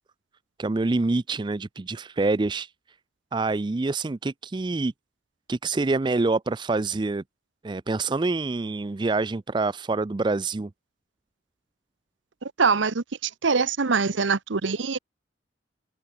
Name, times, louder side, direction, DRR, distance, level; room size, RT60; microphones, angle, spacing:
voice 1, 0.6-2.7 3.3-4.9 5.5-7.2 7.6-10.7, right 3 dB, 25° right, 0.4 m, -26 dB
voice 2, 12.4-15.0, right 5 dB, 90° right, 0.9 m, -24 dB
open air
head